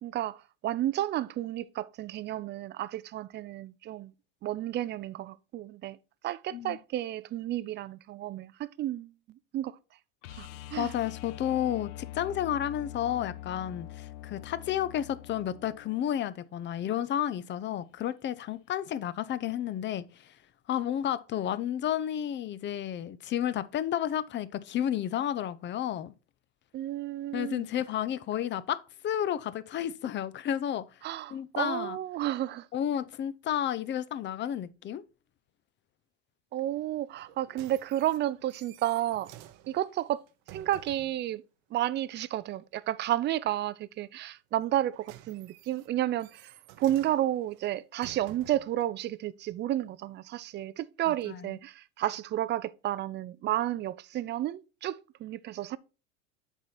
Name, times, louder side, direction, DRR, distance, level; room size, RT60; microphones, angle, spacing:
voice 1, 0.0-4.1 4.4-6.0 6.2-9.8 10.4-10.9 26.7-27.7 31.0-32.7 36.5-39.3 39.7-40.2 40.5-41.4 41.7-55.8, right 13 dB, 30° right, 0.4 m, -32 dB
sound 1, 10.2-16.2 18.7-18.8, left 13 dB, 85° left, 0.6 m, -44 dB
voice 2, 10.8-20.3 20.7-26.1 27.3-30.8 31.3-32.0 32.7-35.0 51.1-51.5, left 10 dB, 30° left, 0.6 m, -31 dB
sound 2, 37.2-41.2 44.6-48.8 49.5-49.6, right 13 dB, 65° right, 0.8 m, -52 dB
8.0 x 4.1 x 4.3 m
hypercardioid pair, 100°, 36 cm